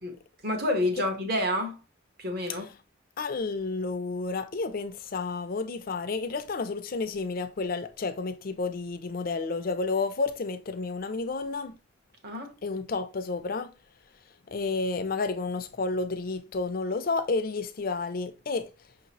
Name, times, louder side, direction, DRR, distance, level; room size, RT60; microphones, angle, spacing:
voice 1, 0.4-1.8 2.2-2.7 12.2-12.5, left 1 dB, 50° right, 1.0 m, -28 dB
voice 2, 3.2-11.8 12.6-13.7 14.5-18.7, left 3 dB, 45° left, 0.4 m, -31 dB
5.8 x 2.9 x 2.9 m
head